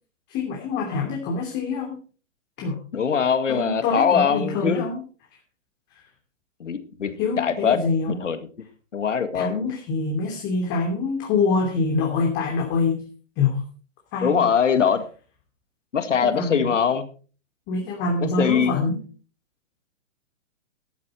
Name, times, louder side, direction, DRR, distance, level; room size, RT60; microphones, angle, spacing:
voice 1, 0.3-2.0 2.6-2.8 3.5-5.0 7.2-8.2 9.3-13.0 13.4-13.6 14.1-14.5 16.2-16.7 17.7-19.0, left 4 dB, 30° left, 1 dB, 2.9 m, -25 dB
voice 2, 2.9-4.8 6.6-7.8 8.1-8.4 8.9-9.7 14.2-15.0 15.9-17.1 18.2-18.7, left 7 dB, 70° left, 11 dB, 2.0 m, -22 dB
13.5 x 11.5 x 4.3 m, 0.38 s
figure-of-eight pair, 120°, 38 cm